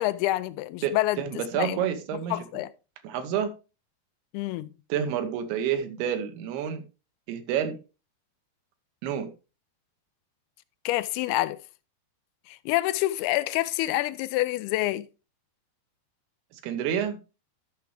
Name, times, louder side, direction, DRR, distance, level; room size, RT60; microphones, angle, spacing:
voice 1, 0.0-1.2 1.5-1.8 2.3-2.7 4.3-4.7 10.9-11.6 12.5-15.1, left 17 dB, 90° left, 2.5 m, -27 dB
voice 2, 0.8-2.4 3.0-3.5 4.9-6.8 7.3-7.8 9.0-9.3 16.6-17.2, right 8 dB, 90° right, 3.0 m, -29 dB
12.5 x 5.9 x 3.3 m
omnidirectional pair, 4.4 m